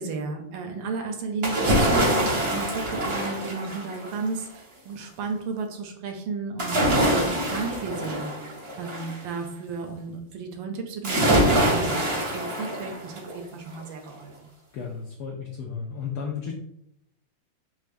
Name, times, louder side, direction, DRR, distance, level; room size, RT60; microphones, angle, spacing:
voice 1, 0.0-8.3 8.8-14.5, right 4 dB, 75° right, 4 dB, 1.2 m, -33 dB
sound 1, 1.4-4.2 6.6-9.2 11.0-13.3 13.7-13.8, right 1 dB, 45° right, 0.7 m, -24 dB
voice 2, 14.7-16.6, left 6 dB, 80° left, -1 dB, 0.9 m, -33 dB
5.6 x 2.1 x 2.5 m, 0.78 s
omnidirectional pair, 2.2 m